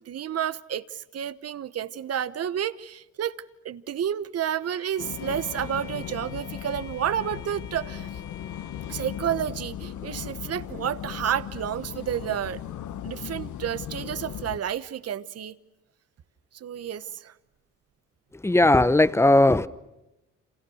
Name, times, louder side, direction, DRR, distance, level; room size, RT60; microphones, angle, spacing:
voice 1, 0.0-8.1 8.9-12.6 13.0-15.6 16.5-17.3, right 9 dB, 55° right, 1.2 m, -30 dB
Bowed string instrument, 4.6-9.5, left 6 dB, 90° left, 5.7 m, -48 dB
sound 1, 5.0-14.6, left 10 dB, 75° left, 1.4 m, -37 dB
voice 2, 18.4-19.7, left 2 dB, 10° left, 1.0 m, -18 dB
30.0 x 27.5 x 6.4 m
cardioid pair, 90°, 30 cm